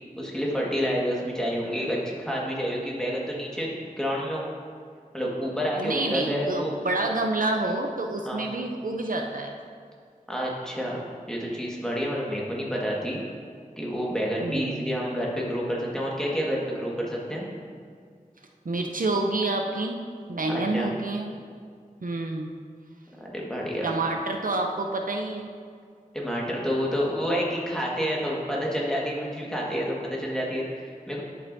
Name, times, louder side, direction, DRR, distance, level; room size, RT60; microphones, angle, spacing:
voice 1, 0.2-4.4 5.1-6.7 8.2-8.4 10.3-11.0 11.3-13.2 13.8-17.5 20.5-20.9 23.2-23.9 26.1-31.2, equal, 5° left, -4 dB, 1.6 m, -29 dB
voice 2, 5.8-9.5 14.4-14.9 18.6-20.0 20.3-21.3 22.0-22.5 23.8-25.5, right 2 dB, 75° right, 2 dB, 0.6 m, -28 dB
11.0 x 5.5 x 2.7 m, 2.1 s
wide cardioid pair, 40°, 14 cm